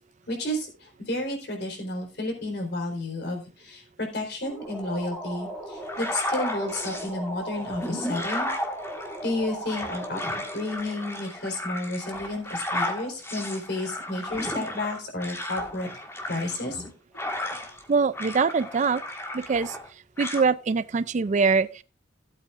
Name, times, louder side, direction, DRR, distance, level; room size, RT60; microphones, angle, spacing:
voice 1, 0.3-8.5 9.2-10.2 10.5-15.9 16.3-16.8, left 1 dB, 60° left, 4.0 m, -31 dB
sound 1, 4.4-11.8, equal, ahead, 2.4 m, -38 dB
sound 2, 5.8-7.1 7.6-17.8 18.1-19.9 20.2-20.4, left 1 dB, 15° left, 1.7 m, -34 dB
voice 2, 17.9-19.0 19.3-19.8 20.2-21.8, right 5 dB, 40° right, 0.4 m, -23 dB
16.5 x 8.3 x 2.5 m
head